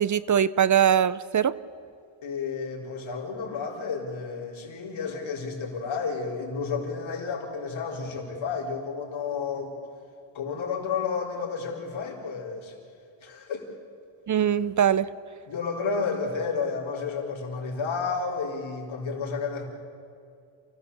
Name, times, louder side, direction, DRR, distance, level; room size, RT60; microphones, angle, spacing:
voice 1, 0.0-1.6 14.3-15.1, right 9 dB, 40° right, 17 dB, 0.5 m, -22 dB
voice 2, 2.2-9.7 10.3-12.7 13.2-13.7 15.5-19.6, left 5 dB, 80° left, -2 dB, 4.6 m, -31 dB
29.0 x 17.0 x 7.1 m, 2.4 s
wide cardioid pair, 145°, 46 cm